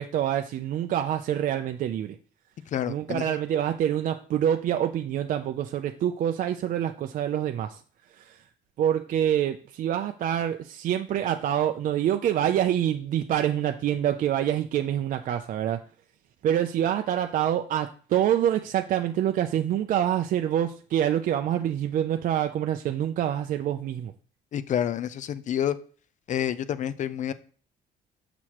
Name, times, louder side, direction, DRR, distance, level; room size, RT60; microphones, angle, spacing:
voice 1, 0.0-2.2 2.9-7.8 8.2-8.4 8.8-15.8 16.4-24.1, right 10 dB, 55° right, 7 dB, 0.4 m, -26 dB
voice 2, 2.7-3.4 24.5-25.8 26.3-27.3, left 10 dB, 45° left, 14 dB, 0.5 m, -28 dB
6.2 x 6.0 x 2.9 m, 0.42 s
cardioid pair, 110°, 17 cm